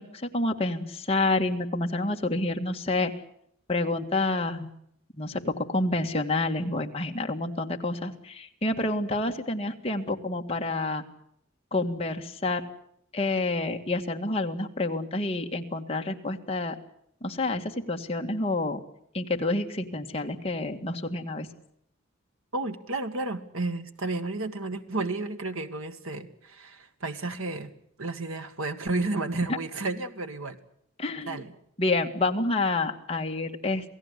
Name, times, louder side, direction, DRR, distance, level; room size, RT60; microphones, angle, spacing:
voice 1, 0.0-3.1 3.7-4.7 5.2-11.0 11.7-12.6 13.1-16.8 17.2-18.8 19.1-21.5 29.5-29.6 31.0-31.4 31.8-33.9, left 2 dB, 30° left, 3 dB, 2.0 m, -28 dB
voice 2, 22.5-27.7 28.0-30.6 31.3-31.5, right 2 dB, 85° right, 8 dB, 1.9 m, -32 dB
27.5 x 17.5 x 8.3 m, 0.72 s
head